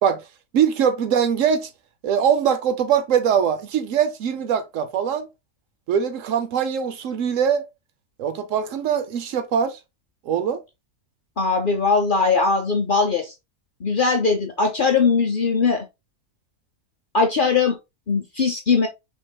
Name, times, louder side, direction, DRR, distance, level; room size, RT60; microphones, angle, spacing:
voice 1, 0.5-1.7 2.0-5.3 5.9-7.7 8.2-9.8 10.3-10.6, right 8 dB, 70° right, 0.9 m, -22 dB
voice 2, 11.4-13.3 13.8-15.8 17.1-17.8 18.1-18.9, left 4 dB, 50° left, 0.6 m, -20 dB
5.5 x 3.5 x 2.2 m
omnidirectional pair, 1.5 m